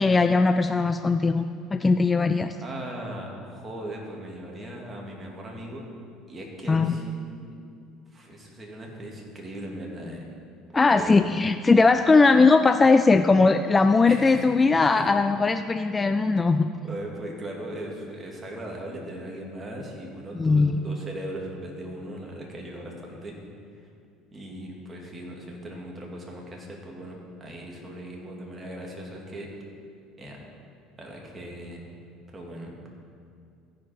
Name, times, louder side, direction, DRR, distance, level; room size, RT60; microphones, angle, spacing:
voice 1, 0.0-1.4 1.7-2.6 6.7-6.9 10.7-16.7 20.4-20.8, left 3 dB, 20° left, 9 dB, 0.3 m, -19 dB
voice 2, 2.6-5.8 6.3-7.5 8.1-10.2 10.7-11.5 14.1-14.4 14.9-15.1 16.8-23.4 23.7-23.9 24.3-29.5 30.2-30.4 31.0-31.8 32.3-32.7, right 1 dB, 25° right, -1 dB, 2.2 m, -38 dB
15.5 x 5.1 x 4.5 m, 2.5 s
supercardioid pair, 85°, 0 cm